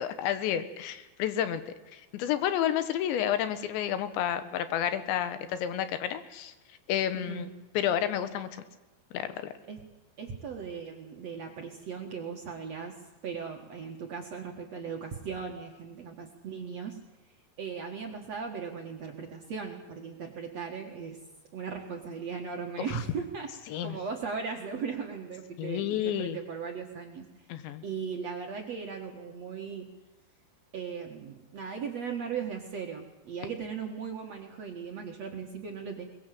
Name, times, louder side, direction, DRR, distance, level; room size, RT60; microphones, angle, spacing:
voice 1, 0.0-6.5 6.9-7.5 7.8-8.6 9.1-9.5 23.7-24.0 25.6-26.4 27.5-27.8, left 10 dB, 85° left, 11 dB, 3.5 m, -30 dB
voice 2, 7.1-7.5 9.7-9.8 10.2-13.0 13.2-17.0 17.6-21.2 21.5-27.3 27.8-29.9 30.7-36.0, right 6 dB, 55° right, 2 dB, 2.0 m, -38 dB
22.5 x 20.5 x 7.7 m, 1.1 s
omnidirectional pair, 5.1 m